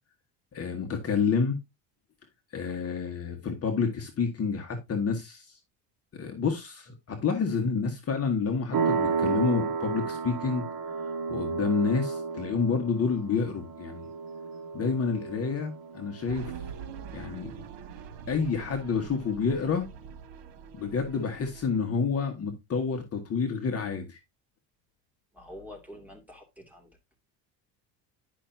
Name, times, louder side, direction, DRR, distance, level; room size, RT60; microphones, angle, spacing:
voice 1, 0.5-1.6 2.5-5.6 6.1-10.7 11.3-14.1 14.7-16.6 17.1-17.5 18.3-19.9 20.7-24.2, left 5 dB, 30° left, 1.5 m, -29 dB
sound 1, 8.7-17.1, right 5 dB, 45° right, 2.2 m, -32 dB
sound 2, 16.3-21.8, right 7 dB, 80° right, 1.7 m, -44 dB
voice 2, 25.3-26.9, left 1 dB, 5° right, 2.6 m, -46 dB
11.0 x 5.8 x 2.7 m
cardioid pair, 130°, 44 cm